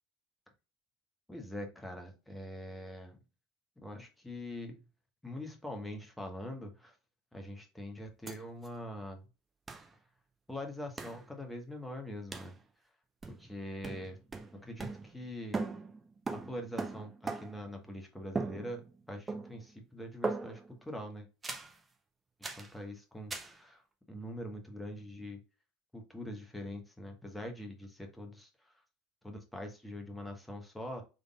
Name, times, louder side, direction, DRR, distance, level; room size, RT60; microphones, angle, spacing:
voice 1, 1.3-3.2 3.8-4.8 5.2-6.9 7.3-9.2 10.5-12.6 13.4-14.2 14.6-15.6 16.3-21.3 22.4-23.8 24.1-25.4 25.9-28.7 29.2-31.0, left 1 dB, 5° left, 3 dB, 1.1 m, -43 dB
sound 1, 8.3-8.4 8.6-8.7 9.7-9.9 11.0-11.2 12.3-12.6 13.2-13.6 13.8-15.3 15.5-17.7 18.3-19.0 19.3-19.7 20.2-20.7 21.4-21.8 22.4-22.7 23.3-23.6, right 3 dB, 20° right, 0.8 m, -39 dB
3.8 x 3.4 x 2.3 m, 0.30 s
figure-of-eight pair, 75°, 0 cm